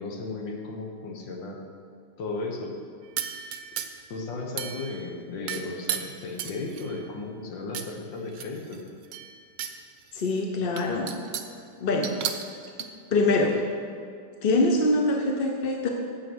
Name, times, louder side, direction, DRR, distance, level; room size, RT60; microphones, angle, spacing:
voice 1, 0.0-1.6 2.2-2.7 4.1-8.8, left 3 dB, 85° left, 1 dB, 2.0 m, -35 dB
sound 1, 3.2-4.1 4.6-5.1 5.5-7.0 7.7-7.9 8.3-9.8 10.2-10.3 10.8-11.6 12.0-12.9, right 8 dB, 60° right, 1.0 m, -34 dB
voice 2, 10.1-11.1 11.8-12.1 13.1-13.6 14.4-15.9, left 2 dB, 50° left, 2 dB, 0.7 m, -24 dB
9.3 x 7.2 x 6.2 m, 2.3 s
omnidirectional pair, 1.9 m